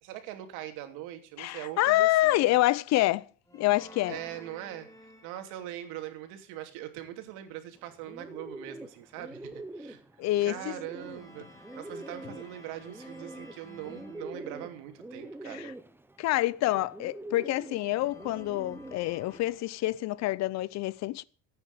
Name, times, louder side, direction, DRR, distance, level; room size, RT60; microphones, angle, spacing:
voice 1, 0.0-2.5 4.1-4.9 5.2-10.0 10.4-15.7, right 12 dB, 80° right, 2.9 m, -42 dB
voice 2, 1.4-3.2 3.5-4.2 10.2-10.6 15.5-15.6 16.2-21.2, left 16 dB, 60° left, 0.7 m, -27 dB
sound 1, 3.5-5.9 10.9-14.9 17.7-20.2, left 1 dB, 10° left, 3.8 m, -53 dB
Bird, 7.8-19.4, right 2 dB, 5° right, 1.2 m, -45 dB
15.5 x 9.1 x 6.8 m
supercardioid pair, 105°, 30 cm